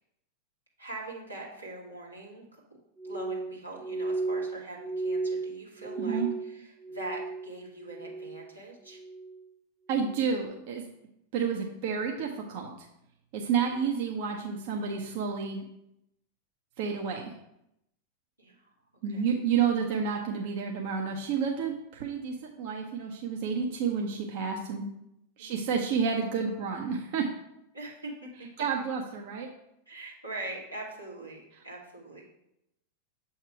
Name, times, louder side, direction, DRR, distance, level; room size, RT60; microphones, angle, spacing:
voice 1, 0.8-2.6 3.0-9.0 18.4-18.7 19.1-19.3 19.6-19.7 25.4-25.5 27.7-28.3 29.9-32.3, right 2 dB, 85° right, -4 dB, 1.5 m, -42 dB
Glass, 3.0-7.6 7.8-8.5 8.9-9.4 10.0-10.3, right 3 dB, 5° right, 0.3 m, -35 dB
voice 2, 6.0-6.3 9.9-10.8 11.3-12.7 13.3-15.6 16.8-17.3 19.0-24.8 25.4-27.3 28.6-29.5, right 6 dB, 50° right, 1 dB, 0.6 m, -30 dB
7.3 x 2.9 x 4.7 m, 0.83 s
figure-of-eight pair, 90°, 0 cm